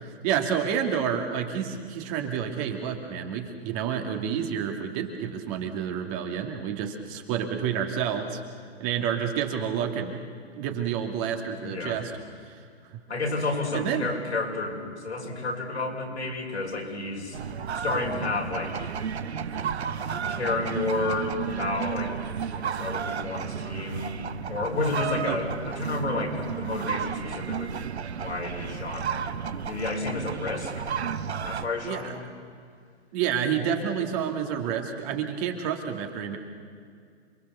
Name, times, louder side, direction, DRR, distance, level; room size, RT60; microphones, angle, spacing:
voice 1, 0.0-8.4 8.8-10.2 10.6-12.1 12.4-12.6 13.7-14.1 25.2-25.4 31.8-32.1 33.1-36.4, right 8 dB, 35° right, 3 dB, 2.6 m, -29 dB
voice 2, 11.6-12.0 13.1-17.4 17.8-18.9 20.3-22.2 22.5-27.9 28.2-29.4 29.7-30.9 31.4-32.3, left 3 dB, 90° left, 0 dB, 6.0 m, -31 dB
sound 1, 17.3-31.7, right 7 dB, 75° right, 1.2 m, -32 dB
28.0 x 22.0 x 7.0 m, 2.2 s
hypercardioid pair, 135°, 33 cm